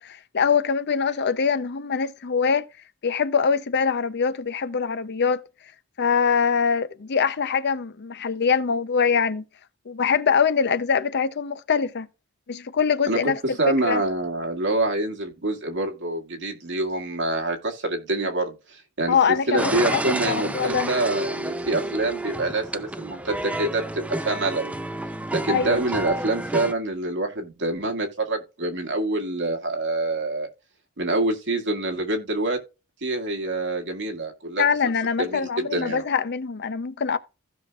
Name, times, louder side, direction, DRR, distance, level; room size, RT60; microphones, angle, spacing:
voice 1, 0.0-2.7 3.0-5.4 6.0-9.4 9.9-12.1 12.5-14.0 19.1-20.9 25.5-25.8 34.6-37.2, left 6 dB, 50° left, 0.6 m, -23 dB
voice 2, 13.6-19.2 19.5-24.7 25.3-30.5 31.0-32.6 33.0-34.7 35.2-36.0, right 2 dB, 60° right, 2.0 m, -26 dB
sound 1, 19.6-26.7, right 1 dB, 5° right, 0.4 m, -30 dB
15.5 x 5.8 x 2.4 m
head